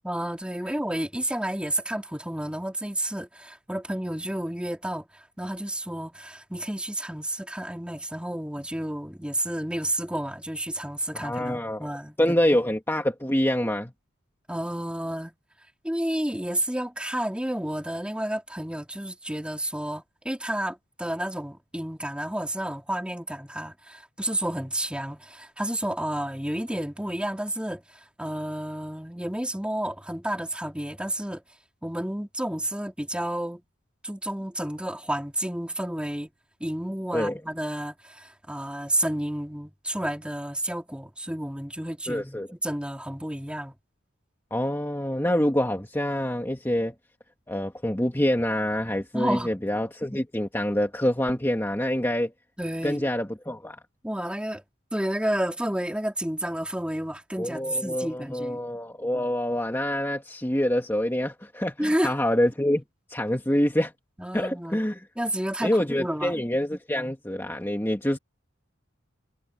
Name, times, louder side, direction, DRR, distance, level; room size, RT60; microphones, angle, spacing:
voice 1, 0.0-12.4 14.5-15.3 15.8-31.4 31.8-33.6 34.0-36.3 36.6-43.7 49.1-49.5 52.6-53.0 54.0-54.6 54.9-58.6 61.8-62.1 64.2-64.8 65.2-66.4, right 1 dB, 5° right, 3.2 m, -31 dB
voice 2, 11.1-11.9 12.2-13.9 37.1-37.4 42.1-42.5 44.5-46.9 47.5-52.3 52.8-53.8 57.4-62.8 63.1-63.9 64.3-65.0 65.6-68.2, left 1 dB, 10° left, 2.0 m, -26 dB
head